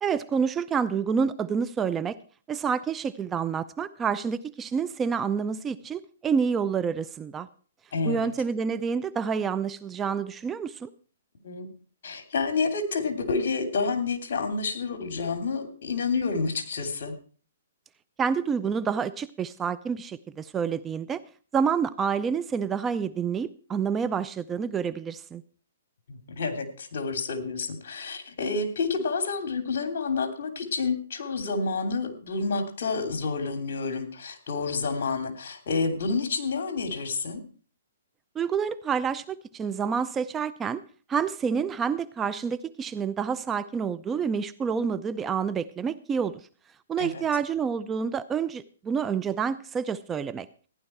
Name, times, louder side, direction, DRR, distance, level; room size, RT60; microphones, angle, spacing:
voice 1, 0.0-2.2 2.5-7.5 8.0-10.9 18.2-21.2 21.5-25.4 38.4-40.8 41.1-46.4 46.9-50.5, right 6 dB, 15° right, 13 dB, 0.6 m, -28 dB
voice 2, 7.9-8.3 11.4-11.7 12.0-17.2 26.1-37.4 47.0-47.2, left 4 dB, 60° left, 8 dB, 3.1 m, -29 dB
15.0 x 10.5 x 4.5 m, 0.39 s
hypercardioid pair, 140°, 0 cm